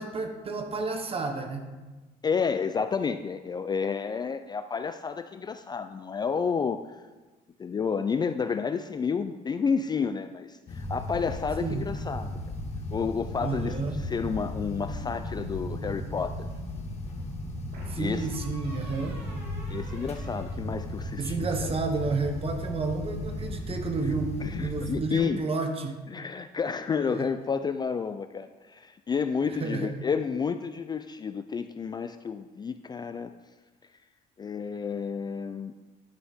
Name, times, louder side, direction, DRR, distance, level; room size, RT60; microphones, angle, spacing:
voice 1, 0.0-1.7 11.6-11.8 13.4-14.0 17.9-19.2 21.2-26.0 27.1-27.3 29.5-29.9, right 3 dB, 35° right, 5 dB, 1.2 m, -31 dB
voice 2, 2.2-6.8 7.6-12.4 12.9-16.5 18.0-18.3 19.7-21.5 24.4-25.4 26.1-33.3 34.4-35.7, left 6 dB, 25° left, 9 dB, 0.3 m, -30 dB
sound 1, 10.7-24.9, left 1 dB, 40° left, 1.6 m, -36 dB
sound 2, 15.0-15.8 17.7-21.3, equal, 80° right, 2.7 m, -46 dB
11.0 x 6.1 x 3.6 m, 1.2 s
cardioid pair, 110°, 17 cm